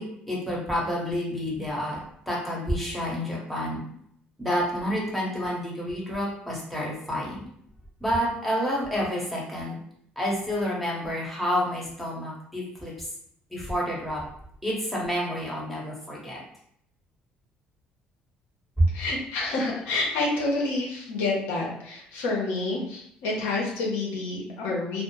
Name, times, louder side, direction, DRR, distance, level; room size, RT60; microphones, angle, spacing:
voice 1, 0.0-2.0 2.3-3.8 4.4-7.4 8.0-9.8 10.2-13.1 13.5-14.2 14.6-16.4 18.8-18.9, equal, ahead, -5 dB, 1.0 m, -29 dB
voice 2, 18.9-25.0, left 2 dB, 80° left, -3 dB, 0.8 m, -28 dB
2.1 x 2.0 x 3.0 m, 0.69 s
supercardioid pair, 80°, 4 cm